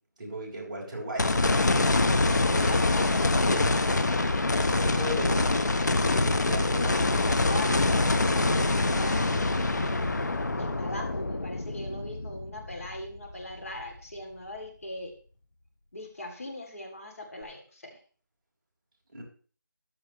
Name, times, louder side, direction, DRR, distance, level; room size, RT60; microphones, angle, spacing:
voice 1, 0.2-1.4 2.0-2.8 4.7-5.7 6.0-7.1 19.1-19.2, right 1 dB, 20° right, -6 dB, 4.0 m, -36 dB
sound 1, 1.2-13.5 14.0-14.1 17.4-17.5, left 2 dB, 60° left, 1.3 m, -25 dB
voice 2, 2.6-4.0 7.4-9.5 10.6-15.1 15.9-18.0, left 1 dB, 45° left, 2 dB, 3.0 m, -40 dB
14.0 x 12.0 x 3.2 m, 0.42 s
figure-of-eight pair, 175°, 11 cm